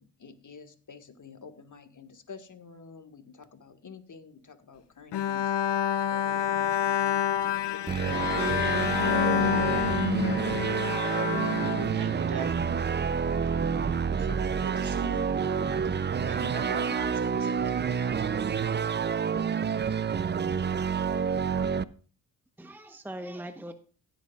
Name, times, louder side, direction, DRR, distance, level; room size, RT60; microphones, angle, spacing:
voice 1, 0.0-5.6 6.1-9.5 12.2-12.7 14.2-14.4, left 5 dB, 45° left, 7 dB, 1.7 m, -49 dB
Bowed string instrument, 5.1-12.5, left 10 dB, 70° left, 0.9 m, -28 dB
sound 1, 7.9-21.8, right 6 dB, 25° right, 0.5 m, -28 dB
voice 2, 11.7-12.7 14.6-15.3 16.3-17.5, right 5 dB, 65° right, 7 dB, 2.1 m, -39 dB
voice 3, 22.6-23.7, right 1 dB, 5° right, 8 dB, 1.0 m, -43 dB
16.5 x 8.5 x 2.4 m, 0.41 s
supercardioid pair, 50°, 43 cm